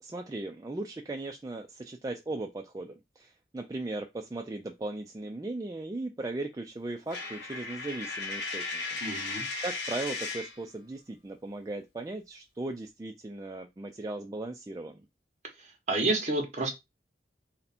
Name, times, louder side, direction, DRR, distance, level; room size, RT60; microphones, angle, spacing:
voice 1, 0.0-15.0, right 2 dB, 20° right, 0.3 m, -38 dB
Coin (dropping), 7.1-10.6, left 3 dB, 80° left, 0.9 m, -36 dB
voice 2, 9.0-9.4 15.6-16.7, right 2 dB, 40° right, 1.1 m, -30 dB
3.3 x 2.7 x 4.1 m
head